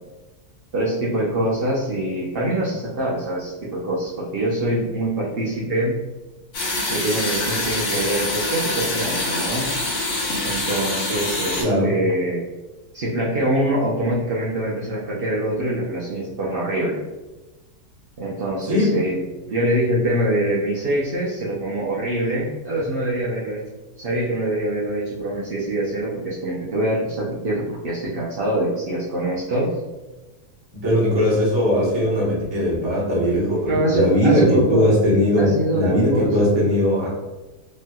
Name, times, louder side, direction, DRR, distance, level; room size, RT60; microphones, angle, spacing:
voice 1, 0.7-6.0 6.9-9.7 10.4-12.4 12.9-17.0 18.2-19.2 19.5-23.6 24.0-29.8 33.7-34.8 35.3-36.6, right 1 dB, 90° right, -5 dB, 0.5 m, -24 dB
sound 1, 6.5-11.6, left 2 dB, 60° left, 1.1 m, -25 dB
voice 2, 11.6-11.9 18.7-18.9 30.7-37.1, equal, 25° right, -5 dB, 0.5 m, -19 dB
3.2 x 2.7 x 2.2 m, 1.1 s
omnidirectional pair, 1.7 m